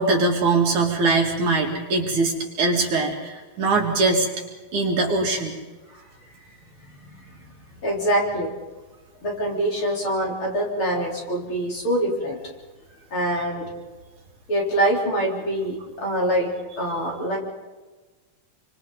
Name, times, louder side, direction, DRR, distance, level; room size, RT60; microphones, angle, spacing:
voice 1, 0.0-4.3 4.7-5.5, right 3 dB, 60° right, 0 dB, 3.7 m, -22 dB
voice 2, 6.9-7.5 7.8-8.5 9.2-12.4 13.1-13.7 14.5-16.5 16.8-17.4, right 1 dB, 35° left, -2 dB, 4.6 m, -25 dB
28.5 x 25.0 x 4.1 m, 1.2 s
omnidirectional pair, 4.1 m